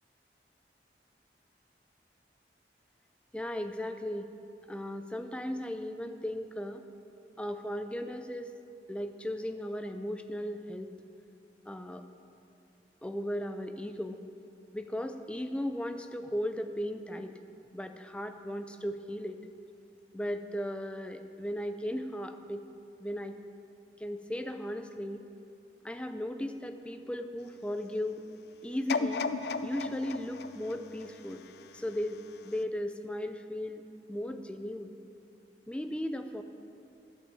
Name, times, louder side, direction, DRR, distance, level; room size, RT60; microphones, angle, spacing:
voice 1, 3.3-4.3 4.7-6.8 7.4-8.5 8.9-10.9 11.7-12.0 13.0-14.2 14.7-17.3 17.7-19.4 20.1-22.7 23.0-23.3 24.0-25.2 25.8-28.3 28.6-29.3 29.6-31.4 31.7-33.8 34.1-34.9 35.7-36.4, equal, 5° left, 7 dB, 0.4 m, -36 dB
Sci-Fi Gun Sound, 28.9-32.0 32.5-32.6, left 4 dB, 70° left, 0.4 m, -35 dB
11.5 x 5.5 x 8.3 m, 2.7 s
head